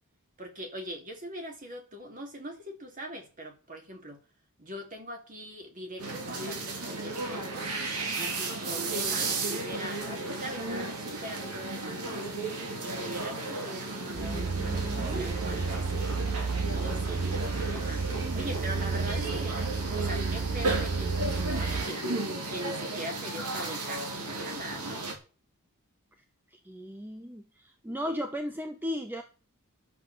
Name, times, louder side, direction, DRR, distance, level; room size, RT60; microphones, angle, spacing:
voice 1, 0.4-4.2 4.6-7.7 8.2-12.3 12.8-16.2 16.7-18.1 18.3-19.6 19.9-22.1 22.5-25.1, right 1 dB, 35° right, 2.9 m, -42 dB
sound 1, 6.0-25.1, right 2 dB, 90° right, 2.8 m, -34 dB
sound 2, 14.1-21.9, right 4 dB, 60° right, 0.8 m, -31 dB
voice 2, 14.2-15.3 17.8-18.1 18.4-18.5 26.6-29.2, equal, 10° right, 1.0 m, -36 dB
11.5 x 6.9 x 6.8 m
head